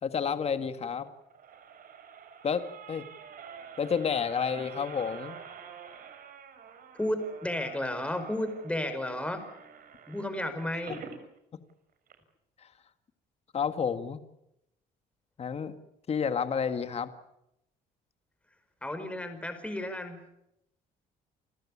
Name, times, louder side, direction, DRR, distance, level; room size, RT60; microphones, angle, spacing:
voice 1, 0.0-1.1 2.4-3.1 3.8-5.4 12.6-12.7 13.5-14.2 15.4-15.8 16.1-17.1, left 6 dB, 40° left, 10 dB, 1.9 m, -30 dB
sound 1, 1.0-11.2 11.7-11.8 12.1-12.2, right 7 dB, 55° right, 4.6 m, -48 dB
voice 2, 7.0-9.5 10.1-11.0 18.8-20.2, left 1 dB, 5° left, 7 dB, 5.1 m, -33 dB
29.5 x 15.0 x 10.0 m, 0.83 s
cardioid pair, 110°, 17 cm